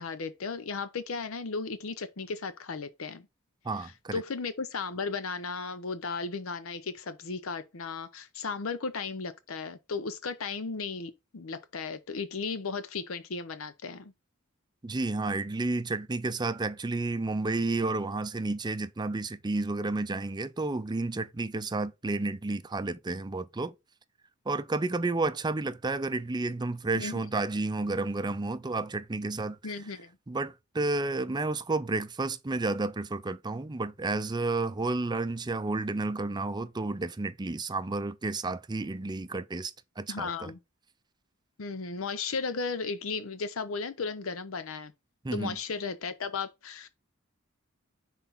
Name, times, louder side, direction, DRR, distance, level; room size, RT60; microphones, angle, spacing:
voice 1, 0.0-3.3 3.8-14.1 26.9-27.1 29.6-30.2 40.1-40.6 41.6-44.9 45.3-46.9, left 4 dB, 80° left, 0.7 m, -35 dB
voice 2, 3.6-4.2 14.8-23.7 24.5-29.6 30.3-40.5 45.2-45.5, right 3 dB, 20° right, 0.5 m, -31 dB
5.9 x 4.0 x 4.0 m
head